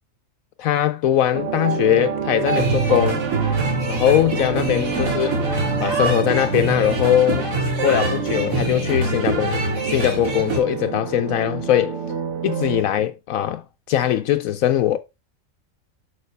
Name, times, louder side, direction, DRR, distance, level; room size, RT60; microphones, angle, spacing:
voice 1, 0.6-3.2 3.9-5.3 5.8-7.5 7.8-12.0 12.4-13.6 13.9-15.0, left 11 dB, 80° left, 1.0 m, -20 dB
sound 1, 1.3-12.8, right 7 dB, 60° right, 1.2 m, -28 dB
sound 2, 2.5-10.6, right 2 dB, 80° right, 2.3 m, -25 dB
6.6 x 6.5 x 3.3 m
omnidirectional pair, 1.4 m